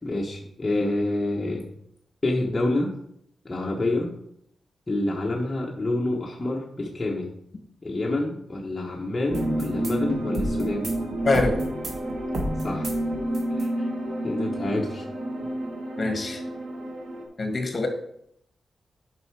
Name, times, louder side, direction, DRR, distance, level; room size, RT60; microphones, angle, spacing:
voice 1, 0.0-1.7 2.2-2.9 3.4-4.1 4.9-7.3 7.8-10.9 12.6-12.9 13.5-13.9 14.2-15.1, left 2 dB, 25° left, -2 dB, 1.2 m, -27 dB
sound 1, 9.3-17.2, right 1 dB, 65° right, 2.2 m, -29 dB
voice 2, 11.2-11.6 16.0-16.4 17.4-17.9, left 3 dB, 40° left, 5 dB, 1.7 m, -24 dB
9.4 x 5.6 x 4.8 m, 0.73 s
wide cardioid pair, 105°, 0 cm